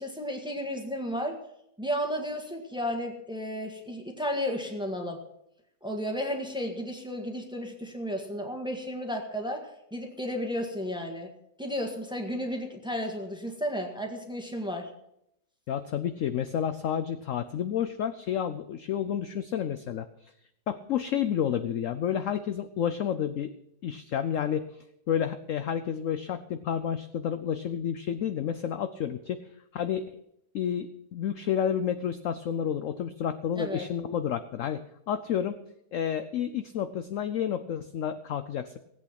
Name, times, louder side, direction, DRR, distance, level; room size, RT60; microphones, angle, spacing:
voice 1, 0.0-1.4 1.8-5.2 5.8-11.3 11.6-14.9 33.5-33.8, equal, 5° right, 2 dB, 1.5 m, -33 dB
voice 2, 15.7-20.1 20.7-23.5 23.8-24.7 25.1-29.5 29.7-30.0 30.5-34.8 35.1-35.6 35.9-38.8, left 9 dB, 65° left, 10 dB, 0.8 m, -30 dB
17.0 x 8.4 x 5.9 m, 0.79 s
omnidirectional pair, 1.9 m